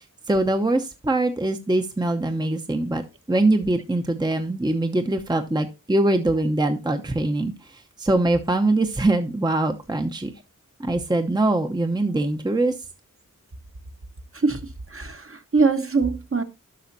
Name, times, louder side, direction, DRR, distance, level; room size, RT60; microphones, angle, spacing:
voice 1, 0.3-3.0 3.3-10.3 10.8-12.7, right 2 dB, 15° right, 6 dB, 0.8 m, -23 dB
voice 2, 14.9-16.4, right 4 dB, 40° right, 6 dB, 1.1 m, -22 dB
12.5 x 5.6 x 2.6 m, 0.28 s
wide cardioid pair, 75°, 33 cm